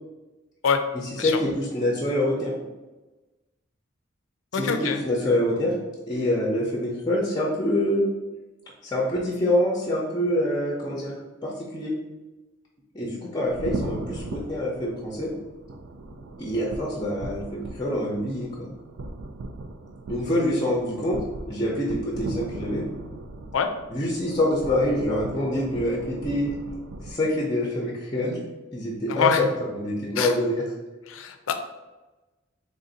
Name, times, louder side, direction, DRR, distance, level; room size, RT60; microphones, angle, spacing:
voice 1, 1.1-2.5 4.5-5.7 6.1-8.1 8.8-11.9 12.9-15.3 16.4-18.7 20.1-21.2 21.5-22.8 23.9-26.5 27.0-28.4 28.7-30.6, left 1 dB, 20° left, -2 dB, 0.5 m, -26 dB
voice 2, 4.5-5.0 23.5-23.7 29.1-29.4 30.2-30.3 31.1-31.6, left 6 dB, 80° left, 7 dB, 0.4 m, -24 dB
sound 1, 13.4-27.1, right 2 dB, 75° right, 0.4 m, -38 dB
3.4 x 2.5 x 3.9 m, 1.1 s
head